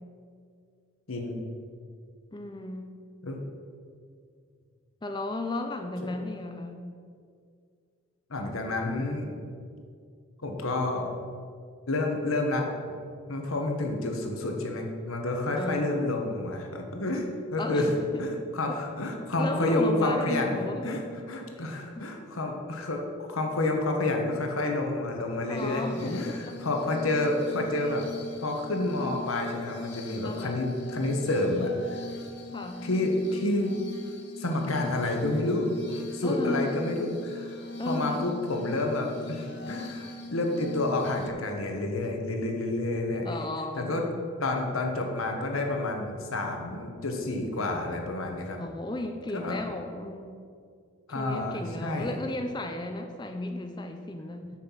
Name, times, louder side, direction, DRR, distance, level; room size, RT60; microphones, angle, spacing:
voice 1, 1.1-1.4 3.2-3.4 8.3-9.3 10.4-11.1 11.9-12.7 13.3-17.3 17.5-17.9 18.2-20.6 20.8-28.0 28.4-32.1 32.8-33.7 34.4-37.6 37.8-43.3 43.7-44.0 44.4-48.6 49.3-49.6 51.1-52.2, left 2 dB, 85° left, 2 dB, 1.3 m, -29 dB
voice 2, 2.3-2.9 5.0-6.9 15.4-15.8 17.6-18.1 19.4-21.1 21.6-21.7 22.0-22.1 25.5-26.4 30.2-30.7 32.5-32.8 36.2-36.7 37.8-38.3 43.2-44.1 48.5-50.4 51.1-54.5, left 2 dB, 20° left, 5 dB, 0.4 m, -34 dB
Glass, 25.6-41.3, left 3 dB, 55° left, 0.9 m, -41 dB
6.4 x 6.0 x 7.3 m, 2.2 s
head